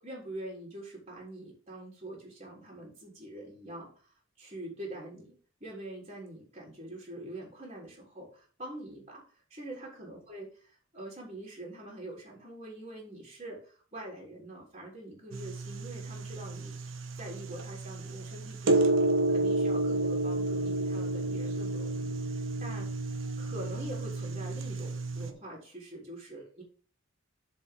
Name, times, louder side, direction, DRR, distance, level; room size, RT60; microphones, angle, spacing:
voice 1, 0.0-3.9 4.4-9.2 9.5-16.8 17.2-19.0 19.3-22.1 22.6-22.9 23.4-26.6, right 1 dB, 30° right, -3 dB, 3.7 m, -44 dB
sound 1, 15.3-25.3, right 2 dB, 70° right, 1.1 m, -31 dB
7.5 x 5.1 x 6.8 m, 0.40 s
head